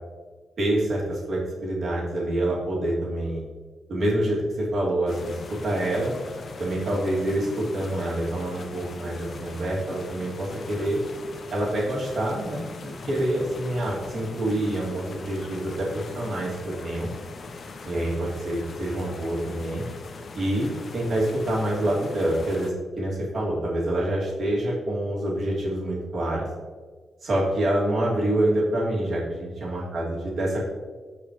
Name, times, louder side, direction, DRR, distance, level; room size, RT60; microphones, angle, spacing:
voice 1, 0.6-3.4 3.9-6.1 6.6-11.0 11.5-17.1 17.8-19.8 20.3-26.5 27.2-30.7, right 1 dB, 50° right, -5 dB, 2.8 m, -26 dB
sound 1, 5.1-22.7, left 4 dB, 45° left, 0.8 m, -41 dB
15.5 x 5.3 x 3.3 m, 1.5 s
wide cardioid pair, 170°, 0 cm